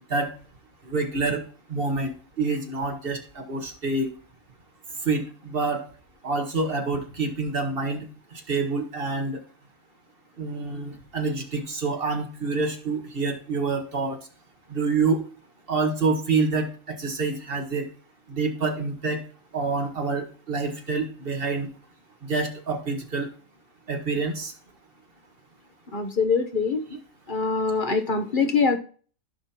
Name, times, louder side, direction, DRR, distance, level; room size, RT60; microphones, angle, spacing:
voice 1, 0.9-1.4 1.7-4.1 5.0-5.2 5.5-5.8 6.2-8.0 8.5-9.3 10.4-14.2 14.7-15.2 15.7-17.8 18.3-19.2 19.5-21.7 22.3-23.3 23.9-24.5, right 3 dB, 45° right, 3 dB, 1.7 m, -27 dB
voice 2, 25.9-26.8 27.3-28.8, left 5 dB, 45° left, 7 dB, 0.9 m, -23 dB
15.0 x 5.4 x 2.9 m, 0.41 s
omnidirectional pair, 1.4 m